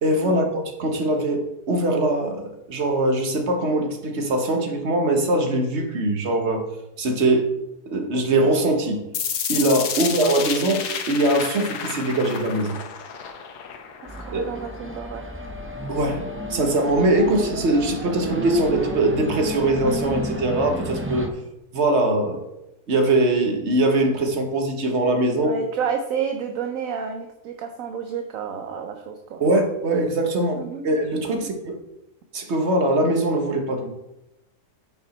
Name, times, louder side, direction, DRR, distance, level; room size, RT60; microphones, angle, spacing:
voice 1, 0.0-6.7 7.0-7.5 7.8-9.0 9.5-12.8 14.3-14.4 15.9-16.2 16.5-21.3 21.7-22.4 22.9-25.6 29.4-31.7 32.3-33.9, right 1 dB, 45° right, 4 dB, 1.4 m, -22 dB
sound 1, 9.1-15.1, left 7 dB, 75° left, 1.4 m, -31 dB
sound 2, 14.1-21.3, equal, 15° right, 0.5 m, -30 dB
voice 2, 14.2-15.3 17.2-17.3 25.4-29.4 30.6-30.8 31.3-31.5, right 6 dB, 65° right, 5 dB, 1.1 m, -30 dB
9.8 x 5.9 x 4.3 m, 0.91 s
omnidirectional pair, 1.7 m